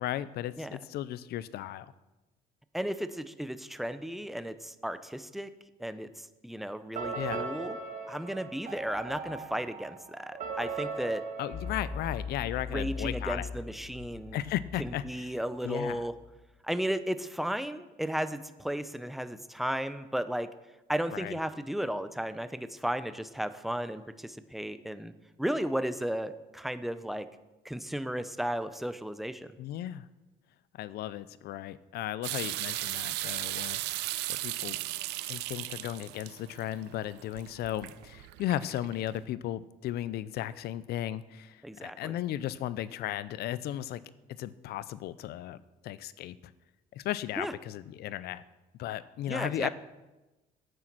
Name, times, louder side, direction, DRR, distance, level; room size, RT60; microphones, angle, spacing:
voice 1, 0.0-1.9 7.1-7.5 11.4-13.5 14.3-15.3 15.6-16.0 21.1-21.4 29.6-30.1 30.7-33.8 34.3-34.8 35.3-44.0 44.4-46.5 46.9-48.4 48.8-49.7, left 12 dB, 70° left, 17 dB, 0.5 m, -35 dB
voice 2, 2.7-5.5 5.8-7.8 8.1-11.2 12.7-14.4 14.8-16.1 16.6-20.5 20.9-25.1 25.4-27.3 27.6-29.5 41.6-42.2 47.4-47.5 49.3-49.7, equal, ahead, 12 dB, 0.6 m, -34 dB
sound 1, 6.9-12.7, right 4 dB, 50° right, 1.4 m, -39 dB
sound 2, 11.5-16.3, left 5 dB, 45° left, 2.3 m, -40 dB
sound 3, 32.2-39.1, right 16 dB, 85° right, 0.5 m, -36 dB
9.3 x 8.8 x 6.0 m, 1.1 s
cardioid pair, 110°, 17 cm